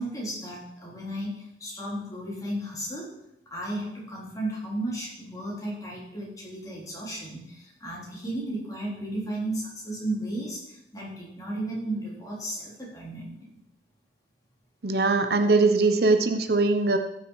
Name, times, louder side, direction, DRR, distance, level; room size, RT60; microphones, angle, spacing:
voice 1, 0.0-3.1 3.5-13.5, right 1 dB, 20° left, -5 dB, 3.7 m, -34 dB
voice 2, 14.8-17.0, right 3 dB, 60° right, 7 dB, 0.8 m, -21 dB
15.0 x 6.4 x 4.8 m, 0.82 s
head